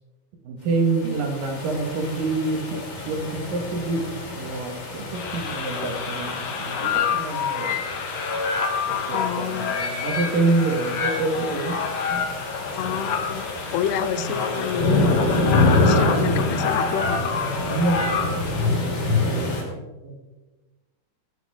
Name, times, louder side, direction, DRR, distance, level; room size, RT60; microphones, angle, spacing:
voice 1, 0.4-7.9 8.9-11.8 12.1-12.3 14.3-14.4 16.2-16.5 17.7-18.6 20.0-20.2, right 3 dB, 65° right, 4 dB, 3.0 m, -27 dB
sound 1, 0.8-19.6, left 2 dB, 70° left, 5.4 m, -27 dB
sound 2, 5.1-18.7, left 5 dB, 55° left, 2.1 m, -28 dB
voice 2, 9.1-9.8 12.8-13.5 13.7-15.2 15.8-17.2, left 9 dB, 85° left, 13 dB, 2.7 m, -28 dB
16.5 x 12.5 x 3.6 m, 1.2 s
omnidirectional pair, 4.7 m